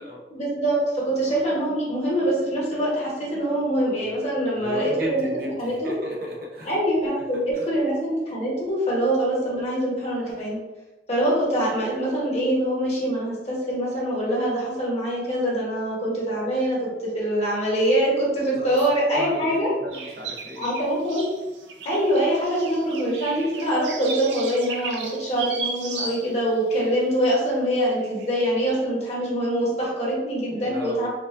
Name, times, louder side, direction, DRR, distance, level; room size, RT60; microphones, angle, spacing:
voice 1, 0.3-5.9 6.7-10.6 11.1-16.8 17.1-19.7 20.6-21.3 21.8-31.1, right 1 dB, 40° left, -5 dB, 1.1 m, -24 dB
voice 2, 4.6-6.8 7.2-7.7 18.5-18.8 19.1-20.7 30.4-31.1, equal, 55° right, -2 dB, 0.8 m, -35 dB
sound 1, 19.9-26.6 27.0-27.1 28.0-28.3 28.5-28.8, right 4 dB, 85° right, 0.5 m, -35 dB
4.6 x 2.4 x 2.5 m, 1.1 s
head